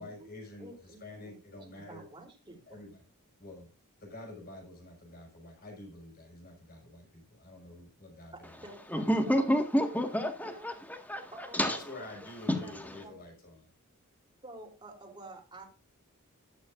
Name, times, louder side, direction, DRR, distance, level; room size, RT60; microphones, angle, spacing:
voice 1, 0.0-2.1 2.7-3.0 3.4-3.7 4.0-8.5 11.6-13.7, left 2 dB, 40° left, 6.1 m, -48 dB
voice 2, 0.6-2.8 8.6-10.0 10.4-10.7 11.3-13.2 14.4-15.6, right 2 dB, 20° right, 3.3 m, -50 dB
voice 3, 8.9-11.9 12.5-13.0, equal, 5° left, 1.7 m, -30 dB
14.5 x 12.5 x 2.6 m
head